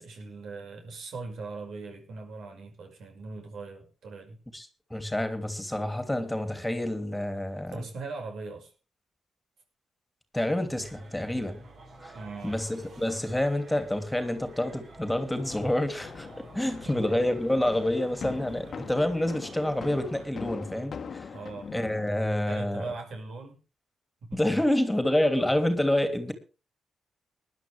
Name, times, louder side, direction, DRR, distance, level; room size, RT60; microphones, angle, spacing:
voice 1, 0.0-4.4 7.7-8.7 12.1-12.6 16.8-17.2 21.3-21.7 22.5-23.6 24.2-24.4, right 3 dB, 75° right, 4 dB, 6.0 m, -40 dB
voice 2, 4.5-7.8 10.3-11.6 12.0-12.2 12.4-16.3 16.5-21.3 21.7-22.8 24.3-26.3, left 1 dB, 10° left, 9 dB, 2.8 m, -28 dB
sound 1, 10.8-20.3, right 2 dB, 60° right, 5.7 m, -49 dB
sound 2, 15.1-22.1, left 6 dB, 55° left, 1.3 m, -42 dB
19.5 x 11.0 x 3.5 m, 0.33 s
cardioid pair, 70°, 0 cm